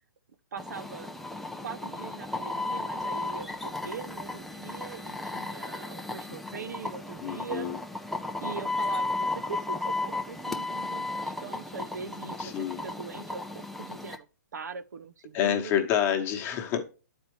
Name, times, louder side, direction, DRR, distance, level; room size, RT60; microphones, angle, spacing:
voice 1, 0.5-1.1 1.6-7.7 8.4-14.3 14.5-15.7, right 5 dB, 75° right, 0.7 m, -41 dB
sound 1, 0.6-14.2, left 2 dB, ahead, 0.5 m, -34 dB
voice 2, 7.2-7.8 12.4-12.8 15.3-16.8, left 9 dB, 25° left, 1.1 m, -28 dB
11.5 x 4.4 x 3.1 m
hypercardioid pair, 145°, 9 cm